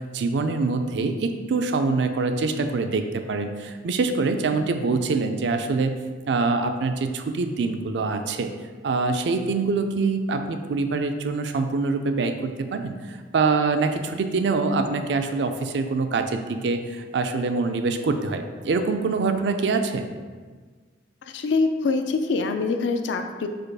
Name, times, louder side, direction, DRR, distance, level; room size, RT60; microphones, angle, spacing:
voice 1, 0.1-6.0 6.3-8.5 8.8-20.1, right 4 dB, 70° right, 7 dB, 0.4 m, -25 dB
voice 2, 21.2-23.5, left 4 dB, 75° left, 6 dB, 0.4 m, -24 dB
5.0 x 2.3 x 4.6 m, 1.5 s
head